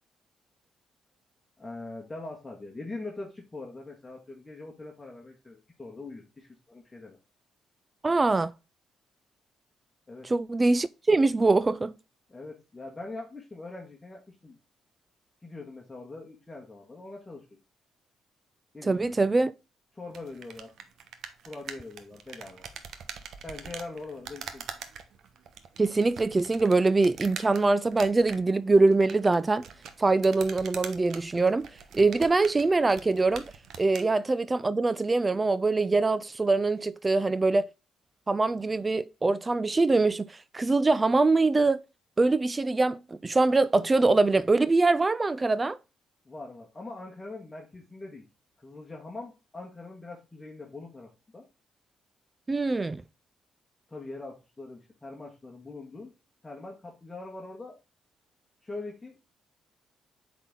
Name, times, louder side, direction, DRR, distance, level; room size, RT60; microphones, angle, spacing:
voice 1, 1.6-7.2 10.1-10.3 12.3-14.5 15.4-17.4 18.7-19.1 19.9-20.7 21.4-22.7 23.4-24.6 46.2-48.2 48.6-51.4 53.9-56.1 56.4-57.7 58.6-59.3, left 2 dB, 20° left, 1.6 m, -42 dB
voice 2, 8.0-8.5 10.2-11.9 18.8-19.5 25.8-29.6 30.0-33.4 33.8-37.7 38.3-41.8 42.2-45.8 52.5-53.0, right 3 dB, 25° right, 0.3 m, -23 dB
sound 1, 20.1-34.1, right 7 dB, 70° right, 1.0 m, -44 dB
8.1 x 4.2 x 3.7 m
cardioid pair, 90°, 0 cm